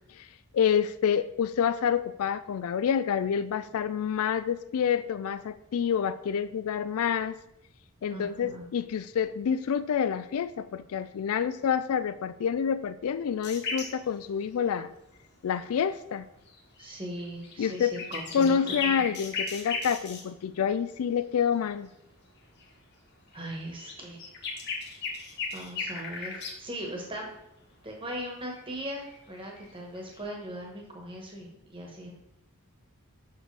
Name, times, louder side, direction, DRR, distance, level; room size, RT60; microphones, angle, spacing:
voice 1, 0.5-7.4 8.0-14.9 15.4-16.3 17.6-17.9 18.3-21.9, left 7 dB, 80° left, 14 dB, 0.3 m, -28 dB
voice 2, 8.1-8.7 16.8-19.1 23.3-24.2 25.5-27.3 27.8-32.1, right 1 dB, 25° right, 1 dB, 1.3 m, -39 dB
sound 1, 13.4-14.7 16.5-16.9 17.2-20.2 21.6-21.7 22.4-22.6 23.3-26.6 28.0-28.1 28.5-28.6 29.0-29.1 29.5-30.2, left 4 dB, 50° left, 1.1 m, -36 dB
6.7 x 5.9 x 3.3 m, 0.81 s
head